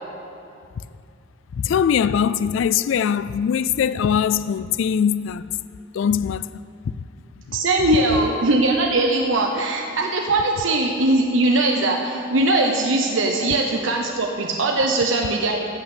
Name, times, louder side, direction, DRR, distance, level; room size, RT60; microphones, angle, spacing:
voice 1, 1.5-5.5 5.9-6.5, left 7 dB, 70° left, 0.3 m, -21 dB
voice 2, 7.5-15.7, right 2 dB, 75° right, 0.9 m, -20 dB
15.0 x 6.0 x 8.2 m
head